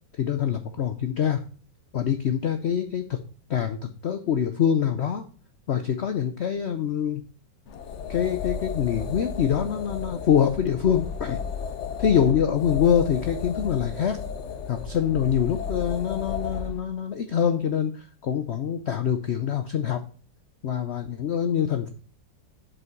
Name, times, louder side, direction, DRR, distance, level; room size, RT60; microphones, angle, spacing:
voice 1, 0.2-1.4 1.9-3.2 3.5-5.2 5.7-7.2 8.1-11.4 12.0-14.2 14.7-20.0 20.6-21.9, left 8 dB, 70° left, 8 dB, 0.6 m, -25 dB
sound 1, 7.7-16.8, left 6 dB, 50° left, 0.9 m, -33 dB
7.9 x 6.2 x 4.5 m, 0.39 s
omnidirectional pair, 2.0 m